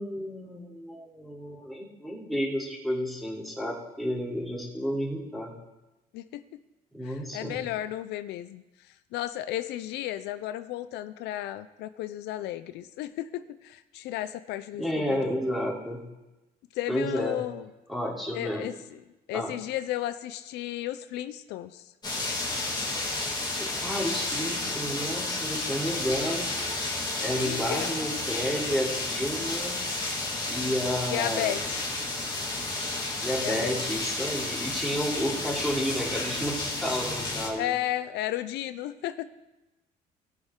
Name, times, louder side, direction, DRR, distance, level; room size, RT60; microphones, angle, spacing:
voice 1, 0.0-5.5 6.9-7.6 14.8-16.0 16.9-17.5 17.9-18.7 19.3-19.5 23.2-26.5 27.2-29.8 30.5-31.6 33.2-37.7, equal, ahead, -4 dB, 3.2 m, -31 dB
voice 2, 7.0-15.4 16.7-17.7 18.3-18.8 19.3-21.9 27.4-27.9 31.1-31.9 33.4-33.8 37.6-39.3, left 13 dB, 85° left, 13 dB, 0.5 m, -34 dB
sound 1, 22.0-37.5, left 2 dB, 25° left, 2.5 m, -31 dB
19.0 x 6.3 x 3.7 m, 1.0 s
cardioid pair, 110°, 17 cm